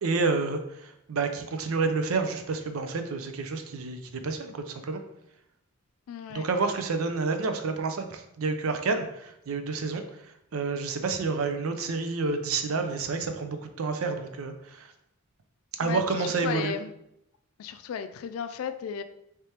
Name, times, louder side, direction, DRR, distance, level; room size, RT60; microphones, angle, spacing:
voice 1, 0.0-5.0 6.3-14.9 15.8-16.7, right 4 dB, 85° right, 7 dB, 0.5 m, -29 dB
voice 2, 6.1-6.5 15.8-16.9 17.6-19.0, left 7 dB, 85° left, 9 dB, 0.3 m, -34 dB
3.3 x 3.2 x 2.8 m, 0.80 s
head